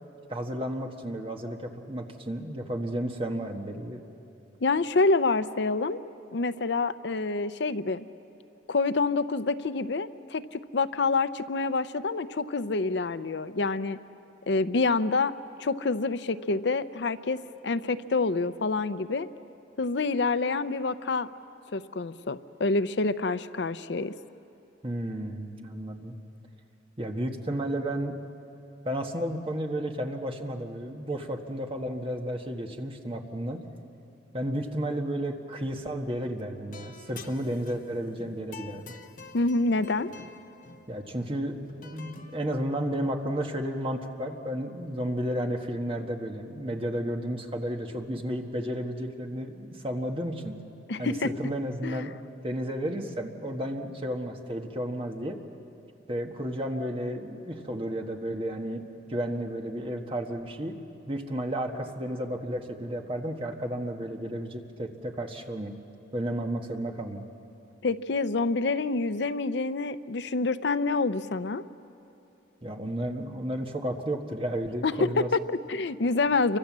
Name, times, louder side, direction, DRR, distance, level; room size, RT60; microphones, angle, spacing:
voice 1, 0.3-4.0 24.8-26.1 27.0-28.1 28.8-33.6 34.3-38.9 40.9-50.5 51.0-52.1 52.4-55.4 56.1-58.8 59.1-60.7 61.1-65.7 66.1-67.2 72.6-75.5, right 1 dB, 30° right, 3 dB, 1.5 m, -32 dB
voice 2, 4.6-6.0 6.3-8.1 8.7-14.0 14.5-15.3 15.6-17.4 17.6-19.3 19.8-21.3 21.7-24.1 39.3-40.1 50.9-51.3 51.8-52.1 67.8-71.6 74.8-75.4 75.7-76.6, left 3 dB, 70° left, 13 dB, 0.6 m, -27 dB
sound 1, 35.7-35.9 36.2-42.4, left 4 dB, 45° left, 0.9 m, -48 dB
28.5 x 24.5 x 7.4 m, 2.8 s
head